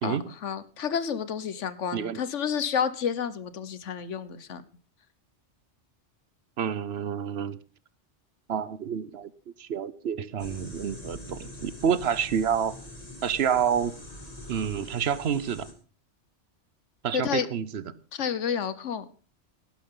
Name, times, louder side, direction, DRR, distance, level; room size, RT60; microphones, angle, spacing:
voice 1, 0.0-4.6 17.1-17.5 18.1-19.1, left 7 dB, 85° left, 1.3 m, -30 dB
voice 2, 1.9-2.2 6.6-7.6 8.5-9.3 9.6-12.8 13.2-13.9 14.5-15.7 17.0-17.8, right 8 dB, 65° right, 1.0 m, -28 dB
sound 1, 10.4-15.7, left 1 dB, 30° left, 2.4 m, -43 dB
17.0 x 12.0 x 3.8 m
omnidirectional pair, 1.2 m